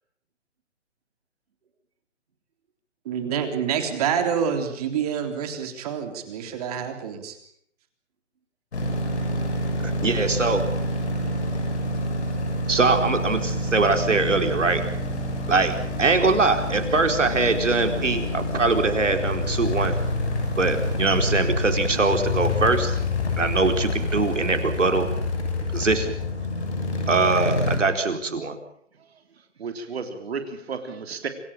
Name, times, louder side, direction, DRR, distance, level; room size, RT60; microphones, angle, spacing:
voice 1, 3.1-7.4, right 7 dB, 30° right, 7 dB, 3.5 m, -27 dB
sound 1, 8.7-27.8, left 1 dB, 65° left, 7.3 m, -27 dB
voice 2, 9.8-10.6 12.7-14.8 15.5-20.0 20.6-23.0 23.4-25.1 25.7-26.1 27.1-28.6, right 3 dB, 90° right, 6 dB, 4.5 m, -22 dB
voice 3, 29.6-31.3, right 5 dB, 60° right, 7 dB, 3.5 m, -32 dB
27.0 x 16.5 x 8.7 m, 0.67 s
hypercardioid pair, 155°, 36 cm